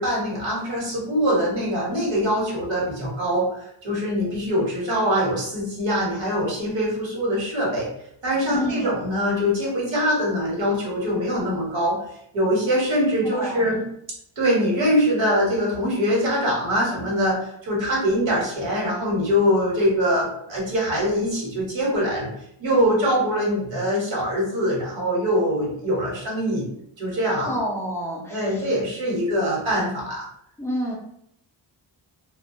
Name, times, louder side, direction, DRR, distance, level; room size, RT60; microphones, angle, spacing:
voice 1, 0.0-7.9 8.2-12.0 12.3-13.8 14.4-22.3 22.6-26.7 27.0-27.6 28.3-30.2, equal, 70° right, -4 dB, 1.1 m, -23 dB
voice 2, 8.5-8.9 13.2-13.6 27.4-28.6 30.6-31.0, equal, 5° left, -3 dB, 0.3 m, -29 dB
2.2 x 2.1 x 2.6 m, 0.73 s
wide cardioid pair, 165°, 47 cm